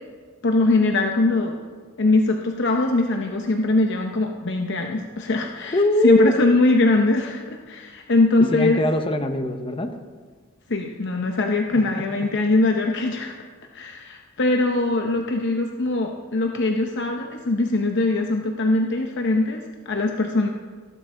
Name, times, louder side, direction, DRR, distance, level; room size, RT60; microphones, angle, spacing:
voice 1, 0.4-1.6 2.0-5.7 6.0-8.8 10.7-13.4 13.7-20.5, left 2 dB, 60° left, 3 dB, 0.8 m, -21 dB
voice 2, 5.6-6.4 8.4-10.0 11.7-11.8, left 1 dB, 25° left, 7 dB, 0.8 m, -22 dB
14.0 x 11.5 x 3.8 m, 1.5 s
head